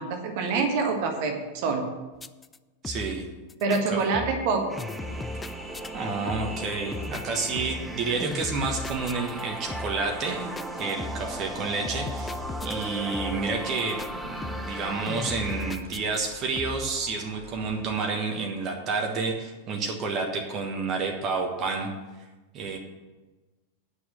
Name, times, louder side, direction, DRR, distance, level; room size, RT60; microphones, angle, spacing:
voice 1, 0.0-1.9 3.6-4.8, right 4 dB, 45° right, 4 dB, 1.4 m, -26 dB
sound 1, 2.2-2.6 2.8-3.2 3.5-3.8 4.1-4.5 4.8-5.9 6.3-6.7 6.9-7.9 8.2-9.4 9.7-10.1 10.6-11.4 11.8-12.9 13.1-13.5 13.8-14.1 14.4-14.8 15.1-16.3 16.6-16.9, left 2 dB, 15° left, 0.4 m, -37 dB
voice 2, 2.8-3.3 3.9-4.2 5.9-21.9 22.5-22.8, right 4 dB, 30° right, 2 dB, 1.4 m, -30 dB
sound 2, 4.7-15.7, right 1 dB, 5° right, 0.9 m, -37 dB
sound 3, 5.0-17.8, equal, 75° right, 1.8 m, -46 dB
9.6 x 6.1 x 7.7 m, 1.2 s
figure-of-eight pair, 90°, 0 cm